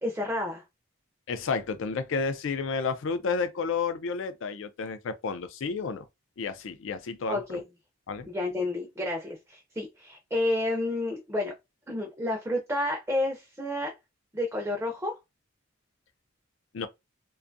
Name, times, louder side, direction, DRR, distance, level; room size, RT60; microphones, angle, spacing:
voice 1, 0.0-0.6 7.3-7.6 8.2-11.6 11.9-14.0 14.3-15.1, left 1 dB, 10° right, 0.4 m, -30 dB
voice 2, 1.3-6.1 6.4-7.6 8.1-8.3 16.7-16.9, left 5 dB, 65° left, 0.4 m, -31 dB
2.5 x 2.2 x 2.5 m
head